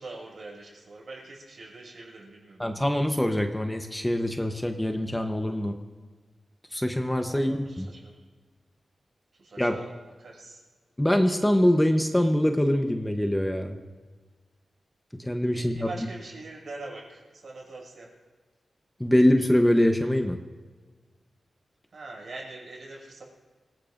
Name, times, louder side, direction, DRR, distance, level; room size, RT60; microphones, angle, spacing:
voice 1, 0.0-2.6 7.3-8.2 9.4-9.9 10.2-10.6 15.5-18.1 21.9-23.2, right 2 dB, 65° right, -2 dB, 6.2 m, -43 dB
voice 2, 2.6-5.8 6.7-7.9 9.6-9.8 11.0-13.7 15.2-15.9 19.0-20.4, left 1 dB, 10° left, 5 dB, 0.9 m, -24 dB
26.0 x 18.0 x 2.6 m, 1.4 s
wide cardioid pair, 100°, 0 cm